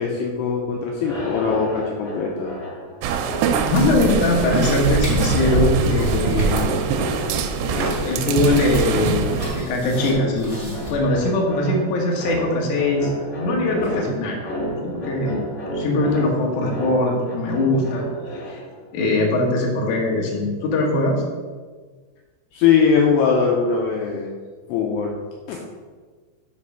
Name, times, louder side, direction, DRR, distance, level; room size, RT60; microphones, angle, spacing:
voice 1, 0.0-2.5 13.9-14.0 22.5-24.3 24.7-25.2 25.5-25.7, left 6 dB, 80° left, -1 dB, 2.5 m, -21 dB
sound 1, 1.0-18.8, equal, 35° left, 0.9 m, -31 dB
sound 2, 3.0-9.6, right 7 dB, 85° right, 2.9 m, -25 dB
voice 2, 3.6-6.6 7.6-13.1 13.4-14.5 14.8-15.5 15.7-18.6 18.9-21.2, left 2 dB, 65° left, -1 dB, 2.1 m, -21 dB
sound 3, 3.7-11.3, right 2 dB, 35° right, 1.6 m, -27 dB
6.3 x 5.3 x 5.6 m, 1.5 s
omnidirectional pair, 5.2 m